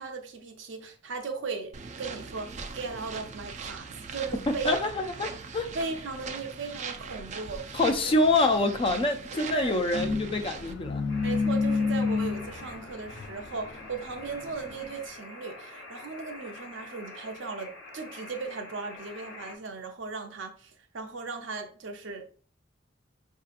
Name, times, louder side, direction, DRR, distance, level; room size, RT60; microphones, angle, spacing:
voice 1, 0.0-4.7 5.7-7.8 9.3-9.8 11.2-22.3, right 4 dB, 70° right, 0.6 m, -37 dB
sound 1, 1.7-10.7, right 5 dB, 35° right, 0.4 m, -40 dB
voice 2, 4.6-5.7 7.7-11.0, left 2 dB, 30° left, 0.4 m, -26 dB
sound 2, 9.9-14.8, left 4 dB, 60° left, 0.7 m, -30 dB
sound 3, 11.1-19.6, left 2 dB, 85° left, 1.2 m, -46 dB
5.4 x 2.7 x 2.5 m
head